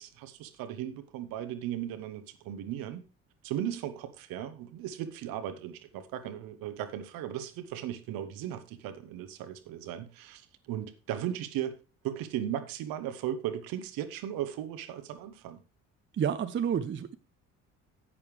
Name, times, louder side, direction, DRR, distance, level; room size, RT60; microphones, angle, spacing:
voice 1, 0.0-3.0 3.4-15.6, right 11 dB, 55° right, 1.1 m, -37 dB
voice 2, 16.1-17.1, right 8 dB, 30° right, 0.7 m, -29 dB
11.0 x 8.5 x 3.2 m
figure-of-eight pair, 50°, 41 cm